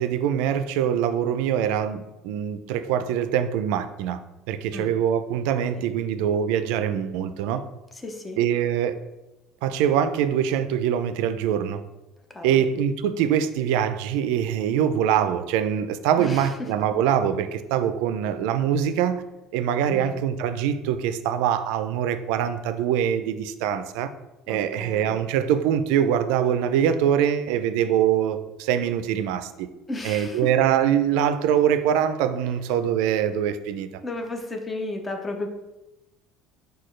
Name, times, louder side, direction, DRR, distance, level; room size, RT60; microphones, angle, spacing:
voice 1, 0.0-4.2 4.5-7.6 8.4-8.9 9.6-11.8 12.4-19.2 19.5-24.1 24.5-29.7 30.0-33.9, right 9 dB, 75° right, 10 dB, 0.3 m, -23 dB
voice 2, 8.0-8.4 12.3-12.6 16.2-16.5 19.9-20.2 24.5-25.2 29.9-30.5 34.0-35.5, left 2 dB, 10° left, 4 dB, 0.5 m, -34 dB
6.2 x 2.3 x 3.1 m, 0.98 s
cardioid pair, 170°, 0 cm